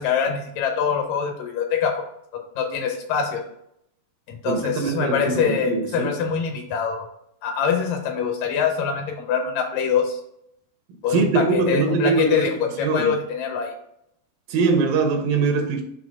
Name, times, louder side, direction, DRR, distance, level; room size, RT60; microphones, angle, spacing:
voice 1, 0.0-2.0 2.3-3.4 4.3-7.1 7.4-10.2 11.0-13.7, left 6 dB, 75° left, 2.5 m, -24 dB
voice 2, 4.4-6.1 11.1-12.5 12.8-13.1 14.5-15.8, right 4 dB, 80° right, 2.4 m, -22 dB
6.1 x 2.9 x 5.3 m
omnidirectional pair, 4.1 m